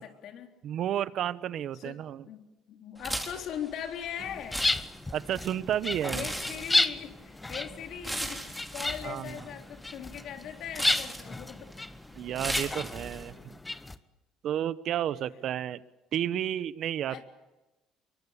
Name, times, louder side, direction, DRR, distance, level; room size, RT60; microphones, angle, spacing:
voice 1, 0.0-0.5 1.7-4.7 6.1-8.4 8.7-11.7 17.1-17.2, left 9 dB, 65° left, 4 dB, 3.7 m, -40 dB
voice 2, 0.6-2.2 5.1-6.3 9.0-9.3 12.2-13.5 14.4-15.8 16.1-17.2, right 10 dB, 60° right, 15 dB, 1.1 m, -31 dB
sound 1, 3.0-13.3, right 1 dB, 5° right, 4.1 m, -39 dB
sound 2, 4.2-14.0, left 2 dB, 15° left, 1.1 m, -33 dB
24.5 x 23.5 x 8.5 m, 1.1 s
supercardioid pair, 90°, 0 cm